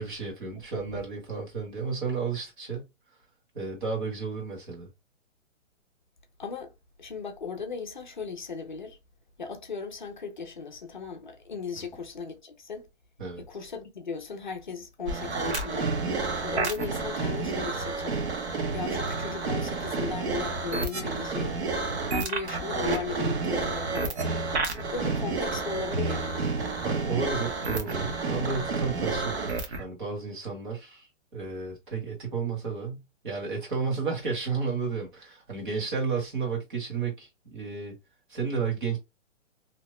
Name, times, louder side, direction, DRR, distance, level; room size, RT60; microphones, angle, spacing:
voice 1, 0.0-2.9 3.5-4.9 11.8-11.9 13.2-13.4 26.8-31.1 31.3-38.0 38.3-39.0, right 5 dB, 40° right, 1.5 m, -32 dB
voice 2, 0.6-1.0 6.4-6.7 7.0-9.0 9.4-12.9 13.4-15.9 16.4-18.2 18.7-21.6 22.1-24.2 24.9-26.5, left 5 dB, 40° left, 0.5 m, -37 dB
sound 1, 15.1-29.8, right 3 dB, 55° right, 0.8 m, -30 dB
2.8 x 2.1 x 3.0 m
hypercardioid pair, 180°, 39 cm